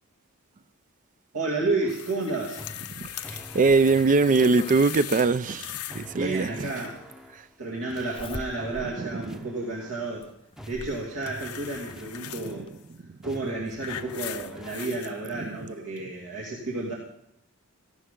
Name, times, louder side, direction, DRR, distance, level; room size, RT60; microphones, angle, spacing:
voice 1, 1.3-2.6 6.2-7.0 7.6-10.3 10.7-12.7 13.2-17.0, right 2 dB, 80° right, 2.5 m, -31 dB
sound 1, 1.8-2.2 2.6-4.9 5.2-7.5 7.9-10.2 10.6-12.8 13.2-14.9, equal, ahead, 0.7 m, -46 dB
sound 2, 1.9-6.1 6.4-7.1 10.8-12.5 13.4-15.1 16.0-16.1, left 12 dB, 85° left, 0.8 m, -40 dB
Zipper (clothing), 3.0-4.8 6.2-6.3 8.0-8.9 9.4-9.5 10.2-11.0 12.2-12.3 12.7-12.8, left 3 dB, 25° left, 0.4 m, -41 dB
voice 2, 3.0-6.5 9.0-9.4 12.2-12.5 15.4-15.7, right 4 dB, 35° right, 0.4 m, -23 dB
15.0 x 12.5 x 3.7 m
head